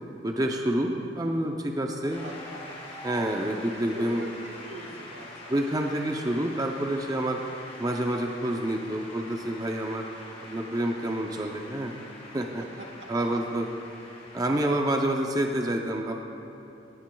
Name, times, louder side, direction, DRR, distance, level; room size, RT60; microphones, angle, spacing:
voice 1, 0.2-2.2 3.0-4.2 5.5-7.4 7.8-10.1 10.4-11.9 12.3-12.6 13.1-13.7 14.3-16.2, right 1 dB, 20° right, 2 dB, 0.5 m, -28 dB
Shout / Cheering / Applause, 2.1-14.9, left 2 dB, 35° left, 1.7 m, -45 dB
voice 2, 2.2-2.9 3.9-5.6 5.9-6.1 12.6-13.4, right 1 dB, 85° right, 1 dB, 1.4 m, -44 dB
19.0 x 10.5 x 2.3 m, 2.9 s
head